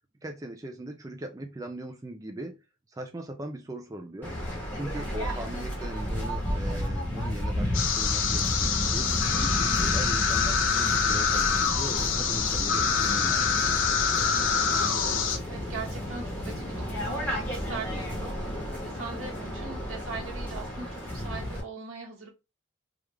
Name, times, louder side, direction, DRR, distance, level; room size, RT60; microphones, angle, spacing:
voice 1, 0.2-2.6 2.9-4.4 4.7-13.7 17.7-18.0, right 1 dB, 15° right, 4 dB, 0.4 m, -39 dB
Waves surf, 4.2-21.6, equal, 10° left, 1.2 m, -32 dB
voice 2, 5.0-5.5 14.7-22.3, right 4 dB, 85° right, -2 dB, 1.5 m, -41 dB
sound 1, 7.7-15.4, left 6 dB, 65° left, 0.6 m, -26 dB
3.3 x 2.4 x 3.2 m, 0.27 s
head